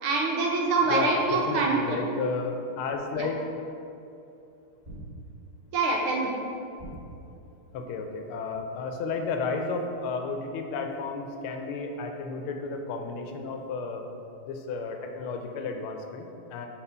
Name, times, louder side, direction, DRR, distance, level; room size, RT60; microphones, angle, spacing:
voice 1, 0.0-2.0 3.2-3.3 5.7-6.3, right 3 dB, 75° right, -1 dB, 1.8 m, -25 dB
voice 2, 0.9-3.4 7.7-14.1 14.4-16.7, left 4 dB, 85° left, 4 dB, 1.5 m, -32 dB
sound 1, 4.8-5.6 6.8-7.5, right 1 dB, 25° right, 1.6 m, -43 dB
5.8 x 4.1 x 5.5 m, 2.7 s
omnidirectional pair, 2.4 m